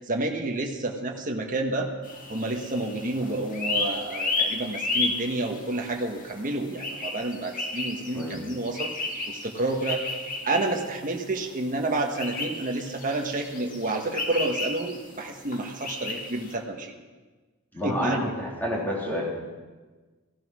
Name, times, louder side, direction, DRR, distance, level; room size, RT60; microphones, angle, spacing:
voice 1, 0.1-1.9 2.3-8.9 9.3-10.0 10.4-16.9 17.8-18.3, right 2 dB, 40° right, 2 dB, 1.4 m, -29 dB
sound 1, 2.0-16.5, left 3 dB, 40° left, 1.9 m, -33 dB
voice 2, 17.7-19.2, equal, 10° left, -4 dB, 3.7 m, -29 dB
16.0 x 12.0 x 6.2 m, 1.3 s
head